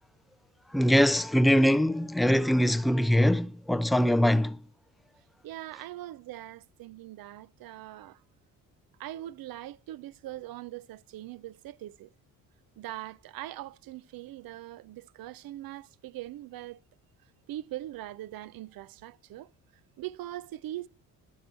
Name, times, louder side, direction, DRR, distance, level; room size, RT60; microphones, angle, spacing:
voice 1, 0.7-4.6, equal, ahead, 0.4 m, -23 dB
voice 2, 5.4-8.2 9.0-12.1 12.8-16.8 17.5-19.5 20.0-20.9, right 14 dB, 60° right, 0.6 m, -41 dB
11.5 x 4.6 x 7.5 m
supercardioid pair, 60°, 39 cm